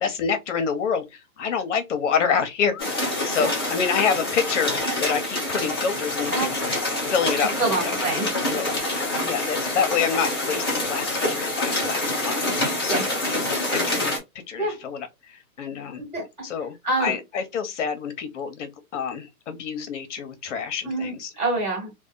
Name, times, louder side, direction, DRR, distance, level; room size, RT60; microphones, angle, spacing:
voice 1, 0.0-6.8 7.1-7.9 8.5-8.7 9.2-13.0 13.3-14.1 14.5-16.0 16.4-21.3, left 6 dB, 55° left, 0.8 m, -27 dB
sound 1, 2.8-14.2, left 2 dB, 20° left, 0.3 m, -26 dB
voice 2, 7.6-8.3 12.9-13.1 14.6-14.8 16.0-16.3 16.8-17.1 20.8-21.9, right 2 dB, 15° right, 1.5 m, -26 dB
2.7 x 2.2 x 2.4 m
hypercardioid pair, 155°, 43 cm